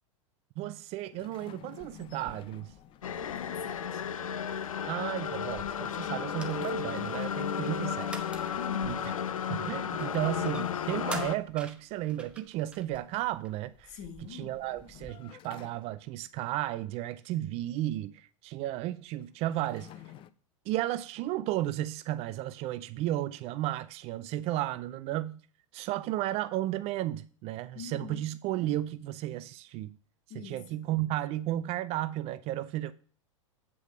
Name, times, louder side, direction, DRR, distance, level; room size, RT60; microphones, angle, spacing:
voice 1, 0.6-2.7 4.9-8.3 8.8-9.1 9.5-14.0 14.3-19.9 20.7-25.4 25.7-29.9 30.3-32.9, right 14 dB, 40° right, 0.4 m, -33 dB
sound 1, 1.1-3.4 5.3-7.2 9.7-11.8 14.2-16.3 19.2-20.3, left 12 dB, 30° left, 0.5 m, -51 dB
sound 2, 1.8-15.1, right 2 dB, 5° right, 1.0 m, -50 dB
sound 3, 3.0-11.4, left 8 dB, 90° left, 0.5 m, -33 dB
voice 2, 3.1-4.0 8.5-8.9 13.9-14.5 27.7-28.2 30.3-30.8, left 6 dB, 45° left, 1.6 m, -44 dB
8.4 x 5.0 x 4.7 m
hypercardioid pair, 105°, 17 cm